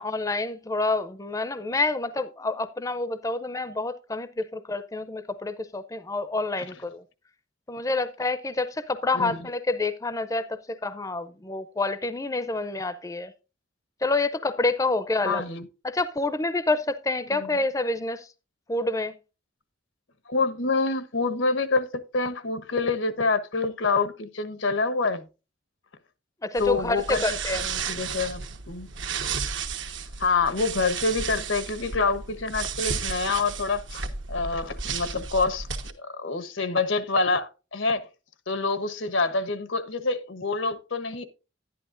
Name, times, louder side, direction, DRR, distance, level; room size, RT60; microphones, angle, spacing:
voice 1, 0.0-7.0 7.7-13.3 14.0-15.4 15.8-18.3 18.7-19.1 26.4-27.6, left 2 dB, 15° left, 0.5 m, -28 dB
voice 2, 15.2-15.7 17.3-17.6 20.3-25.3 26.6-27.2 27.5-28.9 30.2-35.7 36.0-38.1 38.5-41.2, left 3 dB, 90° left, 1.2 m, -27 dB
sound 1, 26.6-35.9, right 6 dB, 80° right, 1.2 m, -33 dB
11.0 x 11.0 x 2.5 m
head